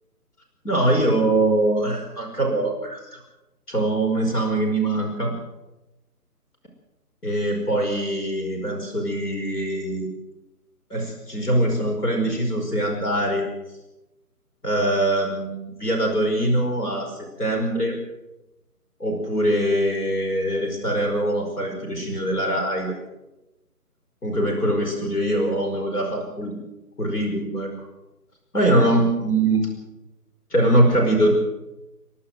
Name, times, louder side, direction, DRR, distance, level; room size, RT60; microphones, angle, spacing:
voice 1, 0.6-3.2 3.7-5.3 7.2-10.1 10.9-13.5 14.6-18.0 19.0-22.9 24.2-26.6 27.0-27.7 28.5-29.7 30.5-31.3, right 1 dB, 75° left, 1 dB, 5.5 m, -22 dB
29.0 x 11.5 x 7.8 m, 0.97 s
figure-of-eight pair, 150°, 47 cm